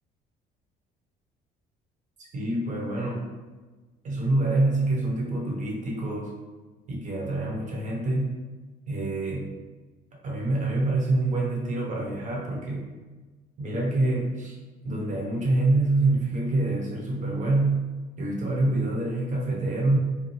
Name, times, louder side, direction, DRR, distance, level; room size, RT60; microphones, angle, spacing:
voice 1, 2.2-3.3 4.0-6.3 6.9-8.4 8.9-9.5 10.2-12.9 13.6-14.6 14.8-17.9 18.2-20.0, right 2 dB, 45° right, -2 dB, 1.1 m, -26 dB
5.2 x 2.2 x 3.3 m, 1.3 s
cardioid pair, 110°, 17 cm